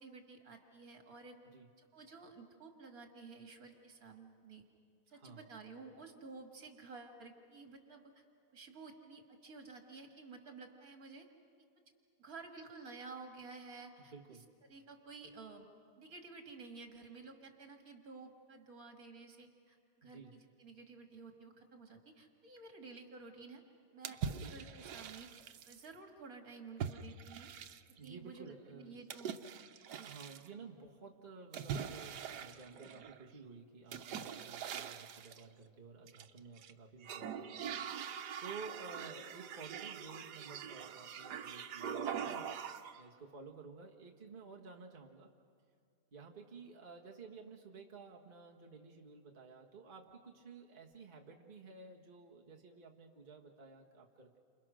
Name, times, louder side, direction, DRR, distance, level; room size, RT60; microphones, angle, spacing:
voice 1, 0.0-1.4 1.8-4.6 5.1-8.2 8.5-11.3 12.2-14.1 14.7-15.7 16.0-23.6 23.9-25.3 25.6-27.5 28.0-29.3 29.9-30.2, right 4 dB, 60° right, 4 dB, 2.6 m, -52 dB
voice 2, 5.1-5.5 14.0-14.4 20.0-20.4 24.3-24.7 28.0-29.0 30.0-38.1 38.4-42.6 43.0-45.3 46.1-54.4, right 4 dB, 35° right, -1 dB, 1.7 m, -53 dB
sound 1, 24.0-25.9 26.8-28.1 29.1-30.5 31.5-33.2 33.9-35.4 36.1-36.7 37.0-43.0, right 8 dB, 90° right, 1.5 m, -43 dB
29.5 x 27.5 x 6.3 m, 2.3 s
omnidirectional pair, 1.7 m